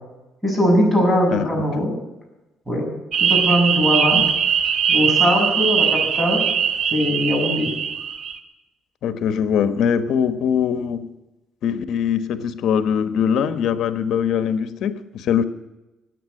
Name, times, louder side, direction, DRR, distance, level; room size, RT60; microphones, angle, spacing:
voice 1, 0.4-1.9 2.7-2.9 3.2-4.2 4.9-6.4 6.9-7.7, equal, 5° right, 7.2 m, -20 dB
voice 2, 1.3-1.9 4.1-4.3 9.0-11.1 11.6-15.4, left 8 dB, 70° left, 1.2 m, -22 dB
sound 1, 3.1-8.3, right 7 dB, 60° right, 1.6 m, -20 dB
14.5 x 9.2 x 9.8 m
cardioid pair, 120°, 0 cm